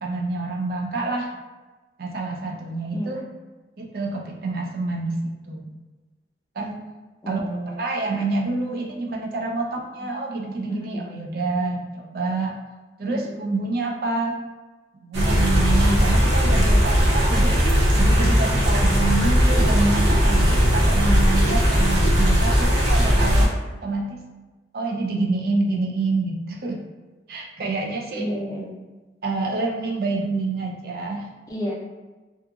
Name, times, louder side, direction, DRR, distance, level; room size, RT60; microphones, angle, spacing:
voice 1, 0.0-1.3 2.0-3.3 3.8-5.7 6.6-6.8 7.3-12.5 13.0-14.4 15.0-17.6 17.9-24.2 24.7-26.8 27.3-28.3 29.2-31.3, right 3 dB, 55° right, 0 dB, 0.4 m, -27 dB
voice 2, 7.2-7.8 10.7-11.0 13.1-13.4 25.0-25.3 28.1-28.7 31.5-31.7, equal, 20° left, -4 dB, 0.4 m, -30 dB
sound 1, 15.1-23.5, equal, 80° right, 0.7 m, -18 dB
2.8 x 2.4 x 2.3 m, 1.2 s
head